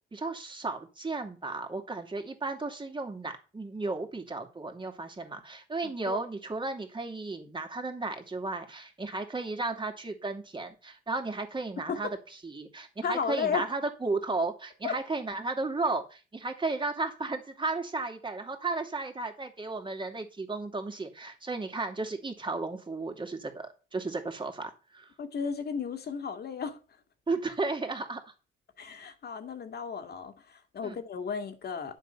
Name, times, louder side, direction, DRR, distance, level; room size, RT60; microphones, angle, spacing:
voice 1, 0.1-12.2 12.4-25.1 27.3-28.3 30.8-31.0, right 3 dB, 25° right, 2.7 m, -34 dB
voice 2, 5.8-6.2 11.8-12.0 13.0-13.7 14.8-15.0 25.2-26.8 28.8-32.0, left 6 dB, 55° left, 2.2 m, -34 dB
10.5 x 7.4 x 5.7 m
cardioid pair, 90°, 20 cm